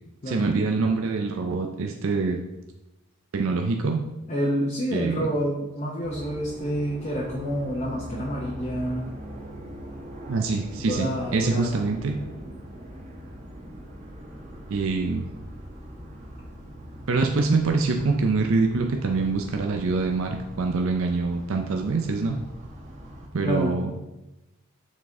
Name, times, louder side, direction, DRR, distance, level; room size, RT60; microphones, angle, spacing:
voice 1, 0.3-2.4 3.3-4.1 4.9-5.2 10.3-12.1 14.7-15.3 17.1-22.4 23.3-23.9, right 3 dB, 70° right, 3 dB, 0.5 m, -25 dB
voice 2, 4.3-9.2 10.9-11.8 18.0-18.2 23.4-23.8, equal, 35° left, -3 dB, 0.8 m, -28 dB
sound 1, 6.0-23.3, equal, 35° right, 1.0 m, -41 dB
7.2 x 4.1 x 3.5 m, 0.99 s
head